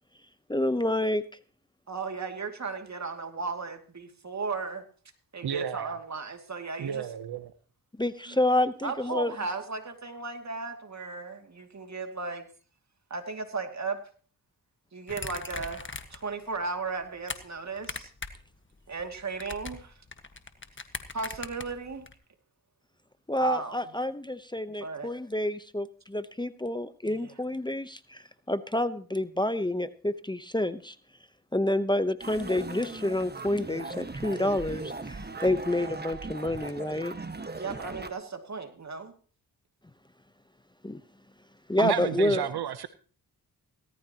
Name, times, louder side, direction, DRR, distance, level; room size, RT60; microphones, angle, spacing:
voice 1, 0.5-1.2 8.0-9.3 23.3-31.0 31.5-37.1 40.8-41.0 41.7-42.5, left 1 dB, 10° left, 12 dB, 0.9 m, -28 dB
voice 2, 1.9-4.8 5.3-7.1 8.3-8.4 8.8-12.5 13.1-14.0 14.9-18.1 18.9-19.9 21.1-22.1 23.4-23.8 24.8-25.1 27.0-27.2 37.5-39.1, right 4 dB, 45° right, 5 dB, 2.6 m, -35 dB
voice 3, 5.4-6.0 6.8-7.5 41.8-42.9, right 9 dB, 80° right, 13 dB, 0.9 m, -31 dB
sound 1, 15.1-16.3 16.7-17.4 17.8-18.5 18.7-22.1, left 3 dB, 30° left, 1.6 m, -39 dB
sound 2, 32.2-38.1, right 3 dB, 25° right, 1.6 m, -39 dB
17.5 x 14.0 x 3.0 m, 0.41 s
cardioid pair, 60°, 38 cm